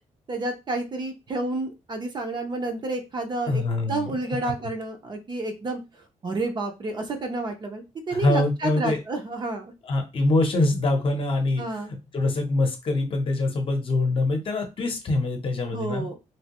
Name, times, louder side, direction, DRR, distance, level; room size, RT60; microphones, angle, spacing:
voice 1, 0.3-3.6 3.9-5.8 6.2-9.7 11.6-11.9 15.7-16.2, right 2 dB, 35° right, 5 dB, 0.6 m, -30 dB
voice 2, 3.5-4.1 8.1-9.0 9.8-11.6 12.1-16.1, left 2 dB, 40° left, 4 dB, 0.8 m, -24 dB
3.2 x 2.7 x 2.9 m, 0.25 s
wide cardioid pair, 175°, 13 cm